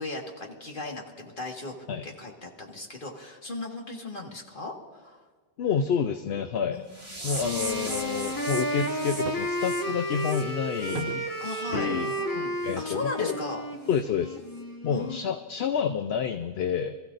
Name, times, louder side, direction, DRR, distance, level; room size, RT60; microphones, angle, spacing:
voice 1, 0.0-1.7 2.0-5.2 6.7-7.2 11.4-13.6 14.9-15.2, left 2 dB, 55° left, 0 dB, 2.0 m, -37 dB
voice 2, 5.6-6.8 7.2-12.1 12.6-13.4 13.9-14.4 14.8-17.0, left 7 dB, 75° left, 7 dB, 0.9 m, -29 dB
sound 1, 6.9-11.6 12.0-12.2 12.7-12.8 13.3-13.4 13.9-14.0, right 1 dB, 30° right, 1.7 m, -39 dB
Wind instrument woodwind instrument, 7.4-15.3, equal, 20° left, 1.4 m, -32 dB
sound 2, 9.2-9.6 10.9-11.4 11.7-11.9 12.8-12.9 13.3-13.4 13.7-13.8 14.4-14.5, right 7 dB, 65° right, 0.7 m, -38 dB
27.0 x 14.5 x 2.6 m, 1.5 s
omnidirectional pair, 1.0 m